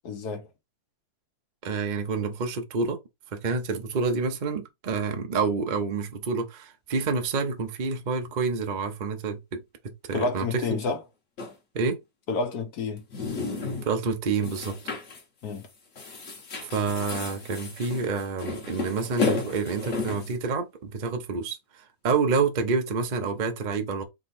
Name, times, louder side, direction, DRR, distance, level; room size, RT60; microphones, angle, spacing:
voice 1, 0.0-0.5 10.1-11.0 12.3-13.1 15.4-15.7, left 4 dB, 70° left, 1.5 m, -29 dB
voice 2, 1.6-3.0 3.3-9.6 10.1-10.8 11.7-12.0 13.8-14.8 16.7-24.0, right 4 dB, 45° right, 0.6 m, -28 dB
sound 1, 11.4-11.5 13.0-14.0 14.4-15.2 15.5-15.7 16.0-20.3, left 4 dB, 50° left, 1.5 m, -32 dB
3.7 x 3.2 x 4.1 m
omnidirectional pair, 1.7 m